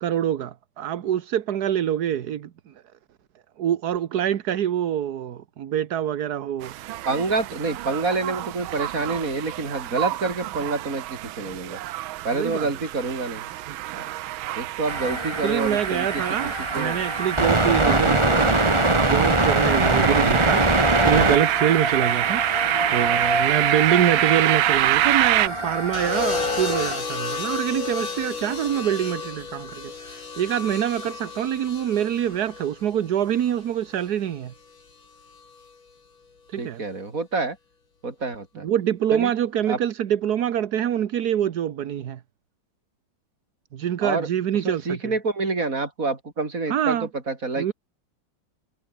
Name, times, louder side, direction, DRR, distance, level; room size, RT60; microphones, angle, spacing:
voice 1, 0.0-2.7 3.6-6.7 12.3-12.7 13.7-13.8 15.4-18.5 18.8-22.4 22.9-34.5 36.5-36.8 38.6-42.2 43.7-45.1 46.7-47.1 47.6-47.7, right 10 dB, 60° right, 1.4 m, -25 dB
sound 1, 6.6-25.5, right 15 dB, 90° right, 1.5 m, -27 dB
voice 2, 7.1-11.8 12.2-13.5 13.9-14.1 14.5-16.2 16.7-17.0 17.8-19.0 36.6-37.6 38.0-38.7 39.1-39.3 39.7-39.8 44.0-44.3 44.6-47.7, right 3 dB, 40° right, 4.1 m, -28 dB
sound 2, 14.9-27.0, right 1 dB, 15° right, 2.7 m, -23 dB
sound 3, 25.9-34.1 35.3-35.7, left 5 dB, 80° left, 4.2 m, -32 dB
omnidirectional pair, 2.1 m